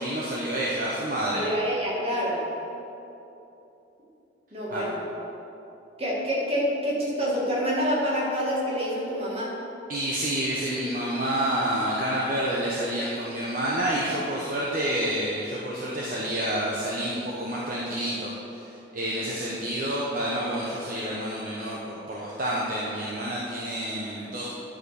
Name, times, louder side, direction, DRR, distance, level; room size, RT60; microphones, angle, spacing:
voice 1, 0.0-1.5 4.7-4.8 9.9-24.5, right 1 dB, 45° right, -5 dB, 1.0 m, -29 dB
voice 2, 1.3-2.4 4.5-5.0 6.0-9.5, equal, 30° right, -5 dB, 2.1 m, -27 dB
10.5 x 5.2 x 6.5 m, 3.0 s
head